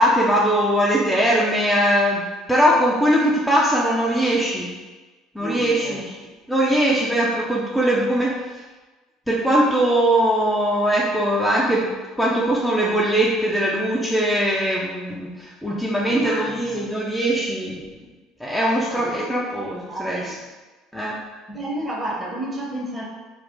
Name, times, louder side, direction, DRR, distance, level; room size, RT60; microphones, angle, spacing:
voice 1, 0.0-4.7 5.3-6.0 6.5-8.4 9.3-17.8 18.4-20.2 20.9-21.2, right 1 dB, 5° left, -5 dB, 0.5 m, -21 dB
voice 2, 5.4-6.3 16.0-16.9 18.9-19.3 19.6-20.4 21.5-23.0, right 1 dB, 20° right, -3 dB, 1.0 m, -31 dB
2.5 x 2.3 x 3.6 m, 1.2 s
hypercardioid pair, 65°, 0 cm